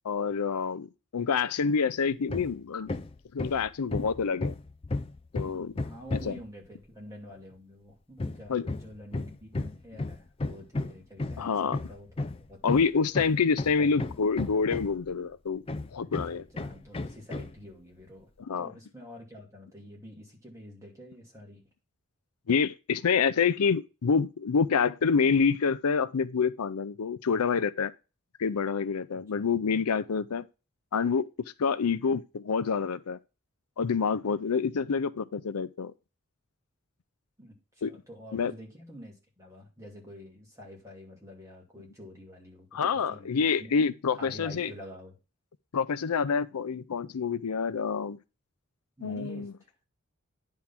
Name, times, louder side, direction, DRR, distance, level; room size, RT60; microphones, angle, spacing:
voice 1, 0.0-0.9 1.1-2.9 3.3-4.5 5.3-5.7 6.1-6.4 8.5-8.7 11.4-11.8 12.6-15.6 15.9-16.4 18.5-18.7 22.5-27.9 28.4-30.4 30.9-33.2 33.8-35.9 37.8-37.9 38.3-38.5 42.7-44.7 45.7-48.2 49.0-49.5, left 5 dB, 90° left, 0.5 m, -27 dB
Hammer, 2.3-2.6 2.9-6.5 8.2-15.1 15.7-17.6, left 2 dB, 25° left, 0.4 m, -34 dB
voice 2, 5.8-12.6 13.8-14.1 16.0-18.3 18.6-21.6 29.1-29.5 37.4-42.7 43.1-43.7 44.1-45.2 49.0-49.7, left 1 dB, 15° right, 2.7 m, -47 dB
9.8 x 3.8 x 5.9 m
head